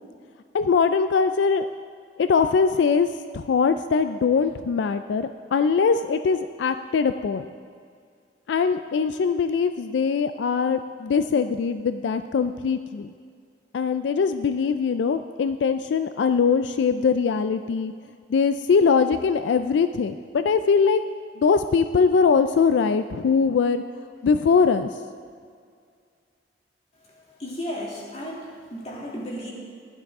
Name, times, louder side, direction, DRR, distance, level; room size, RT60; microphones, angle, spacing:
voice 1, 0.5-1.7 2.2-3.1 3.3-7.5 8.5-13.1 13.7-17.9 18.3-21.0 21.4-23.8 24.2-24.9, left 5 dB, 85° left, 10 dB, 0.3 m, -22 dB
voice 2, 27.1-29.5, equal, 35° left, -4 dB, 2.5 m, -34 dB
15.5 x 11.0 x 3.6 m, 2.2 s
head